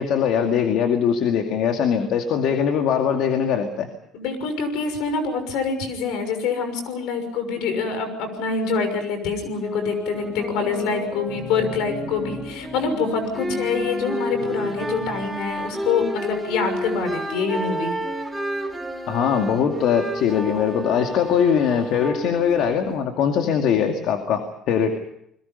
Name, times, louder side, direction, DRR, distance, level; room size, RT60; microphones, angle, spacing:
voice 1, 0.0-3.9 19.1-25.0, left 7 dB, 70° left, 4 dB, 2.3 m, -21 dB
voice 2, 4.1-17.9, left 5 dB, 85° left, 8 dB, 6.3 m, -26 dB
sound 1, 9.6-15.1 15.7-21.3, equal, 10° left, 5.7 m, -32 dB
sound 2, 10.1-15.4, left 5 dB, 50° left, 6.4 m, -36 dB
sound 3, 13.2-23.0, right 2 dB, 5° right, 2.7 m, -34 dB
29.5 x 21.5 x 5.4 m, 0.73 s
cardioid pair, 145°, 0 cm